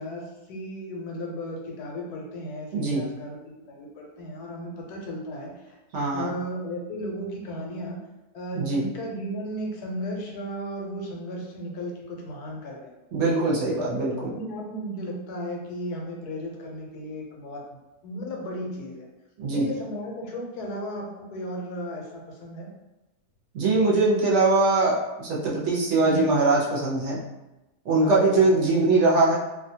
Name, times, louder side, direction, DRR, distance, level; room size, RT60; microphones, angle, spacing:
voice 1, 0.0-5.8 6.1-8.0 8.3-12.9 13.7-19.1 19.5-22.7 26.0-26.2 28.0-28.9, equal, 80° left, 0 dB, 1.1 m, -35 dB
voice 2, 2.7-3.1 5.9-6.3 8.6-8.8 13.1-14.3 19.4-19.7 23.5-27.2 27.8-29.3, right 3 dB, 60° right, -6 dB, 0.8 m, -22 dB
2.7 x 2.3 x 2.7 m, 1.0 s
omnidirectional pair, 1.7 m